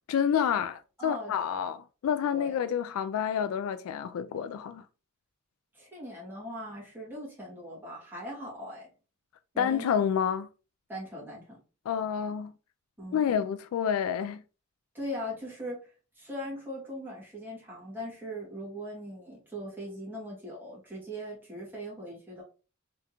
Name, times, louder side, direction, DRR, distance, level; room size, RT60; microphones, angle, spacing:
voice 1, 0.1-4.8 9.6-10.5 11.9-12.5 13.1-14.4, left 8 dB, 75° left, 0.3 m, -29 dB
voice 2, 1.0-1.3 2.3-2.5 5.7-8.9 9.5-10.0 10.9-11.6 13.0-13.2 14.9-22.4, equal, 10° right, 2.0 m, -40 dB
3.5 x 3.5 x 2.9 m
head